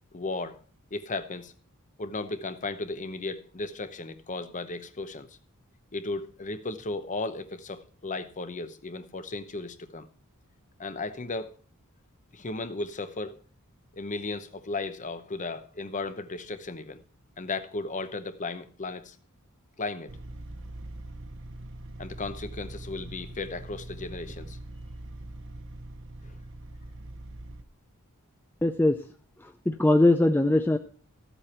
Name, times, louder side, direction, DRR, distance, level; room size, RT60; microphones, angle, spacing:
voice 1, 0.1-0.6 0.9-1.5 2.0-5.4 5.9-10.1 10.8-11.6 12.3-13.4 13.9-17.0 17.4-19.2 19.8-20.2 22.0-24.6 26.2-26.3, left 3 dB, 35° left, 0.8 m, -35 dB
sound 1, 20.1-27.6, right 1 dB, 60° right, 1.0 m, -42 dB
voice 2, 28.6-29.0 29.4-30.8, left 2 dB, 10° left, 0.4 m, -21 dB
14.0 x 8.1 x 4.3 m
head